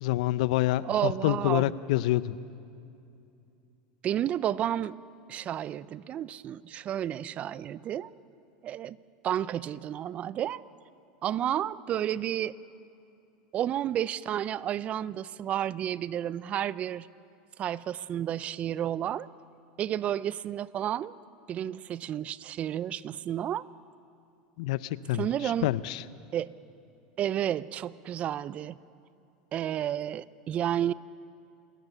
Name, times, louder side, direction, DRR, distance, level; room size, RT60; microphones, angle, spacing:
voice 1, 0.0-2.3 24.6-25.3 25.6-26.0, left 15 dB, 75° left, 17 dB, 0.6 m, -27 dB
voice 2, 0.8-1.7 4.0-5.0 5.3-8.1 8.6-9.0 9.2-10.6 11.2-12.5 13.5-17.1 17.6-19.3 19.8-21.1 21.5-23.7 25.1-25.7 26.3-26.5 27.2-28.8 29.5-30.9, right 11 dB, 35° right, 20 dB, 0.4 m, -31 dB
28.0 x 13.5 x 6.8 m, 2.6 s
supercardioid pair, 130°, 4 cm